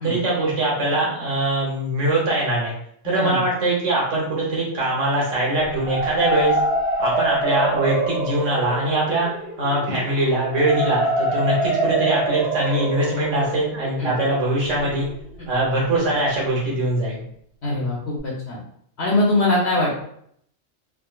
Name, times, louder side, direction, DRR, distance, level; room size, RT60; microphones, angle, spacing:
voice 1, 0.0-2.7 3.0-6.6 7.0-9.3 9.6-15.1 15.5-17.2, right 1 dB, 85° right, -5 dB, 1.2 m, -22 dB
voice 2, 3.0-3.4 14.0-14.2 15.4-15.5 17.6-18.6 19.0-20.0, left 1 dB, 65° left, -4 dB, 0.9 m, -22 dB
sound 1, 5.6-15.5, right 2 dB, 45° right, 1.3 m, -25 dB
3.6 x 2.1 x 2.3 m, 0.69 s
omnidirectional pair, 1.3 m